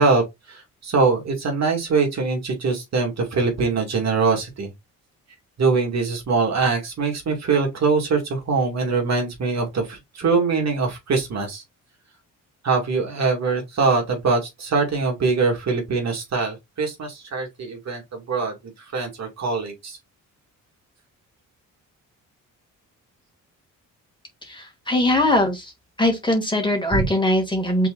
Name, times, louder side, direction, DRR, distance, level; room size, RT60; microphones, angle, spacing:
voice 1, 0.0-4.7 5.6-11.6 12.6-18.5 18.9-20.0 26.9-27.1, right 4 dB, 50° right, 2.1 m, -23 dB
voice 2, 24.4-25.7 26.0-27.9, left 1 dB, 15° left, 2.0 m, -21 dB
5.9 x 3.7 x 2.4 m
cardioid pair, 105°, 33 cm